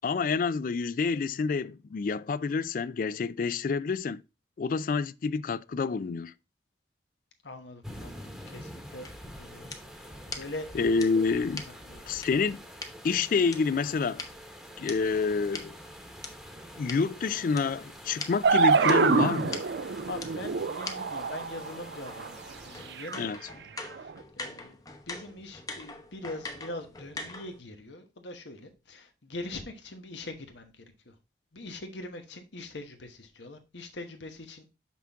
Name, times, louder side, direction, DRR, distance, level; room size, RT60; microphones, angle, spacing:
voice 1, 0.0-4.2 4.6-6.3 10.7-11.7 12.1-12.6 13.0-14.2 14.8-15.8 16.8-19.6 23.2-23.4, left 4 dB, 50° left, 0.3 m, -28 dB
voice 2, 7.4-9.1 9.4-9.7 10.0-10.7 11.7-12.1 20.1-23.6 23.9-24.8 25.1-30.7 31.1-31.2 31.5-34.8, left 2 dB, 85° left, 1.2 m, -42 dB
sound 1, 7.8-23.3, equal, ahead, 1.1 m, -47 dB
sound 2, 9.0-12.9 13.5-16.3 16.9-17.0 17.6-17.7 17.9-18.0 18.2-18.3 18.9-19.0 19.5-19.6 20.2-20.3 20.8-20.9 21.2-27.6, left 3 dB, 20° left, 0.8 m, -42 dB
sound 3, 18.4-22.3 23.0-23.2 24.0-24.1, right 5 dB, 75° right, 0.5 m, -26 dB
6.0 x 5.9 x 3.5 m
head